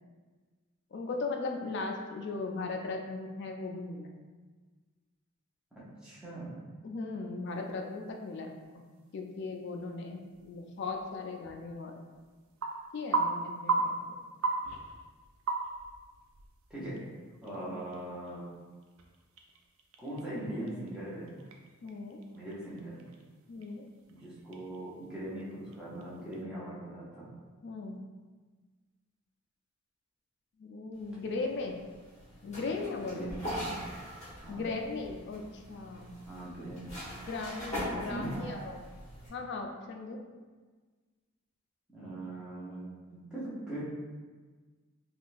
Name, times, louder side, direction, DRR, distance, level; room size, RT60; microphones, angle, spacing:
voice 1, 0.9-4.1 6.8-8.8 9.1-12.0 12.9-14.2 17.0-17.1 17.7-17.8 21.8-22.2 23.5-23.8 27.6-28.0 30.6-31.8 32.4-33.3 34.5-35.4 35.7-36.1 37.3-38.9 39.3-40.2, left 3 dB, 50° left, 3 dB, 0.3 m, -38 dB
voice 2, 5.7-6.6 16.7-17.0 17.4-18.4 20.0-21.4 22.3-23.0 24.1-27.3 33.0-33.8 34.4-34.7 36.2-36.9 37.9-38.3 41.9-43.8, right 1 dB, 5° right, -10 dB, 0.7 m, -41 dB
sound 1, 7.5-26.4, right 3 dB, 65° right, 0.3 m, -40 dB
sound 2, 31.0-39.3, equal, 30° left, 1.1 m, -42 dB
3.6 x 2.3 x 2.5 m, 1.4 s
head